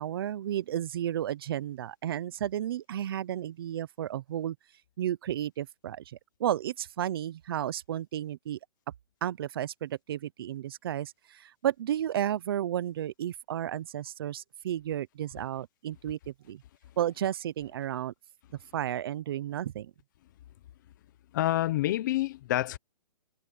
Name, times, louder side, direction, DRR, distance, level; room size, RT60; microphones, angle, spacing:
voice 1, 0.0-4.6 5.0-8.6 9.2-16.6 17.0-18.1 18.7-19.9, right 11 dB, 40° right, 0.7 m, -33 dB
voice 2, 21.3-22.8, left 14 dB, 30° left, 0.9 m, -27 dB
hypercardioid pair, 165°, 20 cm